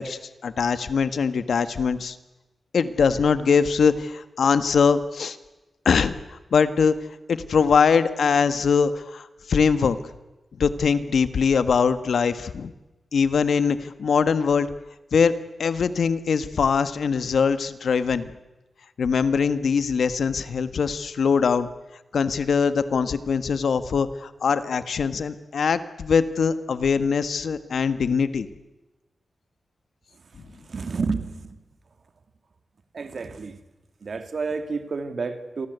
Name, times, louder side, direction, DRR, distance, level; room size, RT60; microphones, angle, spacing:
voice 1, 0.0-2.2 2.7-5.4 5.8-6.9 7.3-10.0 10.6-12.7 13.1-14.7 15.1-15.3 15.6-18.3 19.0-21.7 22.1-28.5, left 6 dB, 75° left, 12 dB, 1.6 m, -22 dB
voice 2, 30.5-31.6 32.9-33.6 34.0-35.7, right 4 dB, 50° right, 9 dB, 2.4 m, -30 dB
28.5 x 23.5 x 8.2 m, 1.0 s
wide cardioid pair, 165°, 0 cm